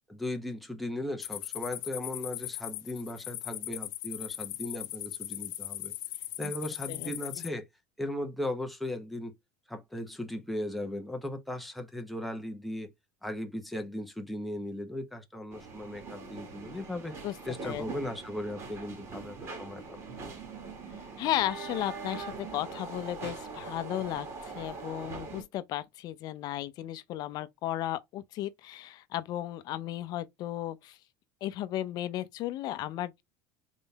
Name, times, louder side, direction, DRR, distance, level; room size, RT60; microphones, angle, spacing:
voice 1, 0.1-5.9 6.4-7.7 8.0-9.3 9.7-12.9 13.2-17.1 17.4-20.0, left 1 dB, ahead, 0.8 m, -37 dB
sound 1, 1.2-7.5, left 16 dB, 70° left, 0.8 m, -39 dB
sound 2, 15.5-25.4, right 4 dB, 30° right, 2.1 m, -42 dB
voice 2, 21.2-31.0 31.4-33.2, left 13 dB, 45° left, 0.6 m, -35 dB
4.0 x 3.7 x 3.4 m
cardioid pair, 160°, 10 cm